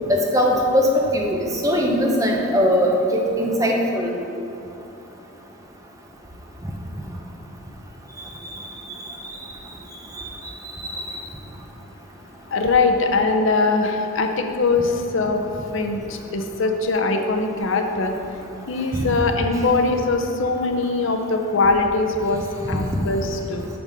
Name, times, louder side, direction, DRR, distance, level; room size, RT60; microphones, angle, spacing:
voice 1, 0.1-4.1 8.2-8.3 10.8-11.2 18.9-19.1 22.7-22.8, equal, 15° right, 0 dB, 0.7 m, -20 dB
voice 2, 12.5-15.4 15.7-18.1 18.7-23.7, left 3 dB, 55° left, 5 dB, 0.6 m, -21 dB
8.7 x 4.0 x 6.3 m, 2.8 s
head